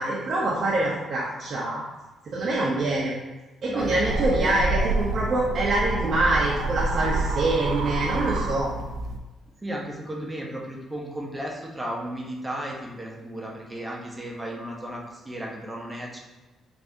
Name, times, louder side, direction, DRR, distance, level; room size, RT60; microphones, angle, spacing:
voice 1, 0.0-1.8 2.2-3.1 3.6-8.7, right 2 dB, 55° right, -6 dB, 0.6 m, -25 dB
voice 2, 3.7-4.6 9.6-16.2, right 1 dB, 15° right, -2 dB, 0.7 m, -34 dB
sound 1, 3.8-9.2, right 2 dB, 85° right, 0.3 m, -28 dB
3.5 x 2.6 x 2.6 m, 1.1 s
cardioid pair, 90°, 0 cm